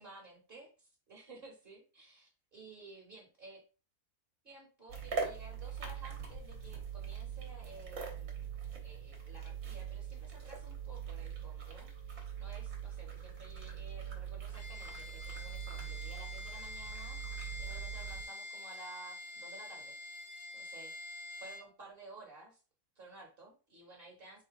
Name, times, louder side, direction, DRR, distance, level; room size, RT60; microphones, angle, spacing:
voice 1, 0.0-3.6 4.4-8.4 8.8-20.0 20.5-22.6 22.9-24.4, right 3 dB, 40° right, -1 dB, 1.3 m, -54 dB
sound 1, 4.9-18.2, right 7 dB, 60° right, 1.5 m, -42 dB
Bowed string instrument, 14.5-21.7, left 2 dB, 35° left, 0.9 m, -46 dB
3.9 x 2.8 x 4.7 m, 0.35 s
omnidirectional pair, 1.6 m